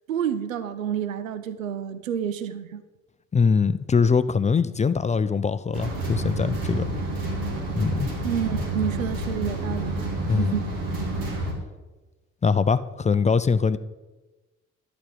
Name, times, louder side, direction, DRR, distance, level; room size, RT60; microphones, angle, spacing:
voice 1, 0.1-2.8 8.2-9.9 10.4-10.8, right 9 dB, 85° right, 13 dB, 0.5 m, -29 dB
voice 2, 3.3-6.9 7.7-8.1 10.2-10.6 12.4-13.8, left 5 dB, 20° left, 14 dB, 0.5 m, -22 dB
sound 1, 5.7-11.5, right 1 dB, 60° right, 2.4 m, -29 dB
11.5 x 5.3 x 7.9 m, 1.1 s
figure-of-eight pair, 40°, 39 cm